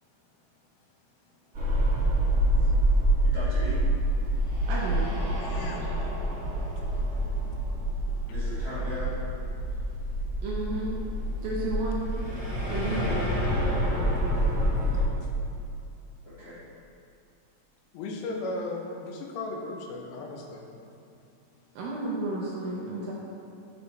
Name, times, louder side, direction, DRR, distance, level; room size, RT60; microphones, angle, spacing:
sound 1, 1.5-15.0, right 1 dB, 50° right, 1.1 m, -27 dB
voice 1, 3.3-3.8 8.2-9.2 14.2-14.7 16.2-16.6, equal, 70° left, -14 dB, 0.6 m, -39 dB
voice 2, 4.7-5.2 10.4-11.0 11.4-12.2 12.7-13.1 21.8-23.1, right 2 dB, 75° right, -4 dB, 2.2 m, -32 dB
voice 3, 5.4-5.8 6.3-6.4 17.9-20.7, left 2 dB, 85° left, 1 dB, 2.9 m, -36 dB
8.1 x 6.4 x 3.4 m, 2.5 s
omnidirectional pair, 4.8 m